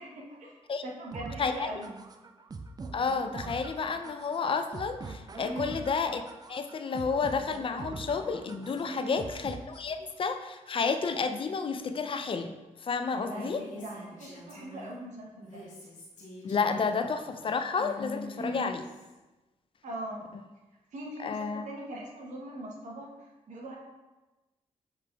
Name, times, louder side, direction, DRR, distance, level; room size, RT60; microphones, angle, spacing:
voice 1, 0.0-2.0 5.4-5.8 8.8-9.2 13.1-15.6 18.4-18.7 19.8-20.2 20.9-23.8, right 1 dB, 75° right, -2 dB, 0.9 m, -41 dB
sound 1, 1.1-10.1, right 3 dB, 30° right, 0.4 m, -43 dB
voice 2, 2.9-6.2 6.5-12.5 12.8-13.6 16.4-18.8 21.2-21.6, left 5 dB, 45° left, 8 dB, 0.4 m, -31 dB
Female speech woman speaking, 13.2-15.0 15.4-19.1, left 2 dB, 90° left, 1.1 m, -46 dB
6.7 x 3.3 x 2.3 m, 1.1 s
cardioid pair, 65°, 13 cm